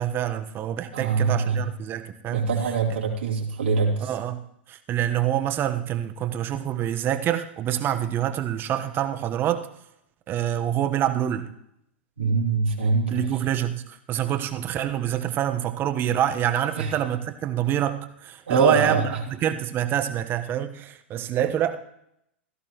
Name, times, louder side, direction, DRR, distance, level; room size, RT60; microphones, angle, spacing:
voice 1, 0.0-2.5 4.0-4.4 4.7-9.7 10.3-11.5 13.1-21.8, right 11 dB, 35° right, 8 dB, 1.2 m, -26 dB
voice 2, 0.9-1.6 2.3-4.1 12.2-13.2 16.8-16.9 18.5-19.0, right 5 dB, 80° right, -1 dB, 3.2 m, -23 dB
17.0 x 13.5 x 3.0 m, 0.77 s
hypercardioid pair, 100°, 6 cm